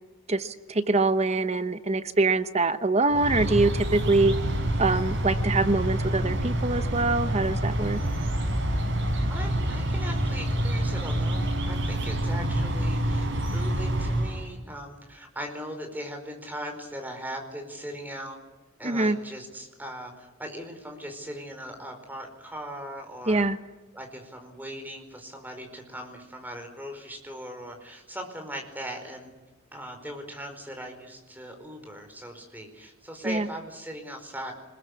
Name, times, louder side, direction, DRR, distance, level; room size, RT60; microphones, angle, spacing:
voice 1, 0.3-4.3 4.8-8.0 18.8-19.2 23.3-23.6 33.3-33.5, right 3 dB, 30° right, 11 dB, 1.0 m, -24 dB
sound 1, 3.1-14.5, right 1 dB, 60° right, 6.0 m, -27 dB
voice 2, 9.3-18.4 18.8-23.5 23.9-29.3 29.7-34.5, equal, 10° right, 3 dB, 4.9 m, -39 dB
26.0 x 21.5 x 8.5 m, 1.1 s
head